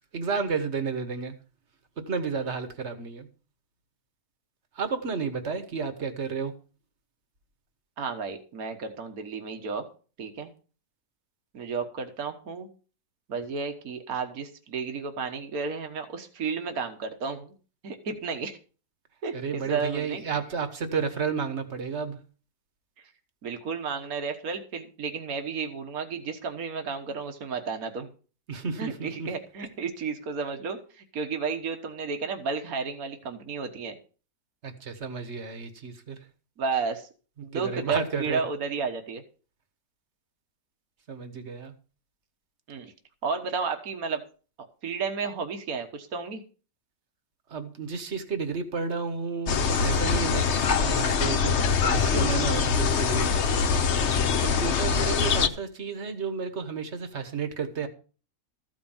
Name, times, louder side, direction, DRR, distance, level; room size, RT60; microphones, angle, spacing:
voice 1, 0.1-1.3 2.0-3.3 4.8-6.5 19.3-22.2 28.5-29.3 34.6-36.2 37.5-38.4 41.1-41.7 47.5-51.5 51.8-53.6 54.4-57.9, right 5 dB, 50° right, 1.6 m, -32 dB
voice 2, 8.0-9.9 10.2-10.5 11.5-12.7 13.3-17.5 17.8-18.6 19.2-20.2 23.4-28.1 28.8-34.0 36.6-37.1 37.4-39.2 42.7-42.9 43.2-44.2 44.8-46.4, right 5 dB, 70° right, 1.8 m, -32 dB
sound 1, 49.5-55.5, left 5 dB, 55° left, 1.1 m, -24 dB
14.0 x 5.3 x 7.2 m
omnidirectional pair, 1.6 m